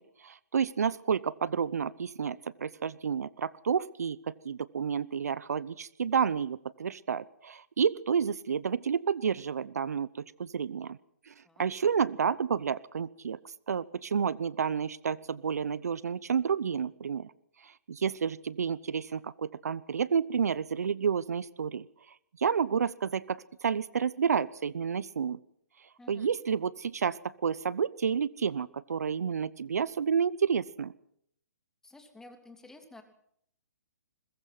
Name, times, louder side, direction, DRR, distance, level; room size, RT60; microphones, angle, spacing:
voice 1, 0.2-11.0 11.3-11.4 11.6-13.4 13.7-17.3 17.6-21.8 22.4-25.4 26.1-30.9, right 7 dB, 70° right, 20 dB, 0.8 m, -30 dB
voice 2, 26.0-26.3 31.8-33.0, left 2 dB, 5° left, 6 dB, 3.0 m, -52 dB
22.0 x 21.0 x 6.0 m, 0.70 s
hypercardioid pair, 135°, 9 cm